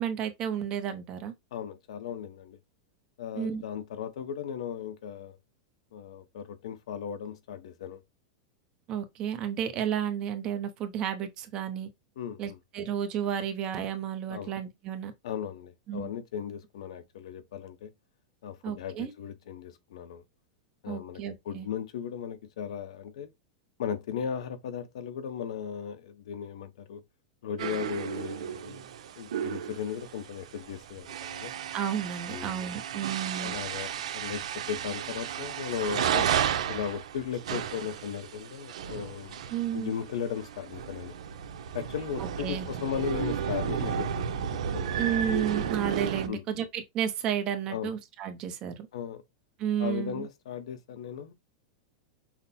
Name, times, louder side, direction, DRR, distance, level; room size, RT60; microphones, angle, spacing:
voice 1, 0.0-1.3 3.3-3.6 8.9-11.9 12.4-15.1 15.9-16.1 18.6-19.1 20.9-21.7 31.7-33.6 39.5-39.9 42.2-42.7 45.0-48.9 49.6-50.3, right 9 dB, 25° right, 0.6 m, -32 dB
voice 2, 1.5-2.6 3.2-5.4 5.9-8.0 12.2-12.6 14.3-14.5 15.2-17.9 18.4-20.2 20.8-23.3 23.8-27.0 27.4-28.9 29.2-31.5 32.3-32.6 33.4-36.3 36.7-39.4 39.7-41.2 41.7-45.0 46.3-46.4 47.7-47.9 48.9-49.2 49.8-51.3, left 8 dB, 70° left, 0.8 m, -36 dB
sound 1, 27.6-46.3, right 8 dB, 90° right, 0.7 m, -33 dB
5.8 x 2.1 x 4.1 m
supercardioid pair, 175°, 3 cm